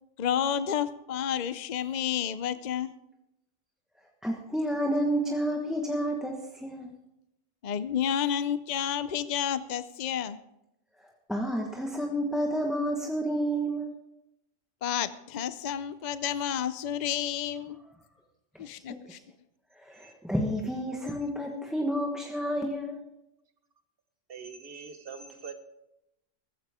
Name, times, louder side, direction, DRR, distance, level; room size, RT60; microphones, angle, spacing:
voice 1, 0.2-2.9 7.6-10.4 14.8-17.8 18.6-19.2, left 9 dB, 50° left, 13 dB, 0.5 m, -30 dB
voice 2, 4.2-6.9 11.3-13.9 18.5-19.2 19.7-23.0, equal, ahead, 0 dB, 1.2 m, -30 dB
voice 3, 24.3-25.5, right 5 dB, 50° right, 9 dB, 1.3 m, -43 dB
15.0 x 15.0 x 3.6 m, 0.87 s
omnidirectional pair, 1.3 m